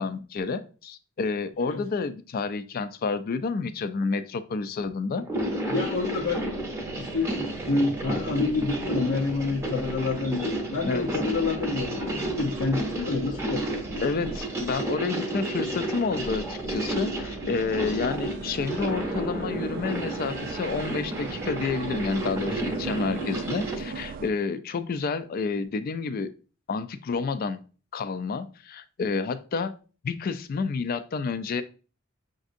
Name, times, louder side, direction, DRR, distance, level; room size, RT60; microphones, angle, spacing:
voice 1, 0.0-5.3 10.9-11.0 14.0-26.3 26.7-27.6 27.9-29.8 30.0-31.6, left 4 dB, 45° left, 12 dB, 0.3 m, -29 dB
sound 1, 5.2-23.8, right 1 dB, 15° right, 0.7 m, -32 dB
sound 2, 5.3-24.3, right 4 dB, 45° right, 0.3 m, -38 dB
voice 2, 5.7-6.5 6.9-13.8, left 3 dB, 90° left, -3 dB, 0.6 m, -28 dB
5.9 x 2.6 x 2.5 m, 0.36 s
head